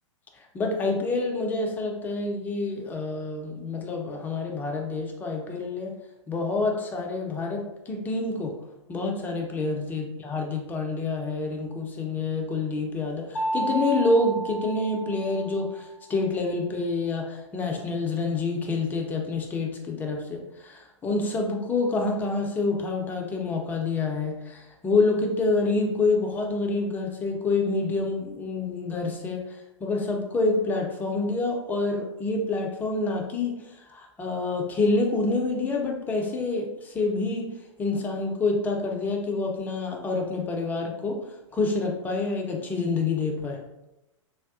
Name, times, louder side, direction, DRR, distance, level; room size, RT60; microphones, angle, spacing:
voice 1, 0.3-5.9 6.3-8.6 8.9-37.5 37.8-41.2 41.5-43.6, left 3 dB, 10° left, 1 dB, 0.4 m, -27 dB
Mallet percussion, 13.4-15.9, right 2 dB, 75° left, 0.4 m, -31 dB
3.4 x 2.2 x 2.3 m, 0.96 s
figure-of-eight pair, 105°, 17 cm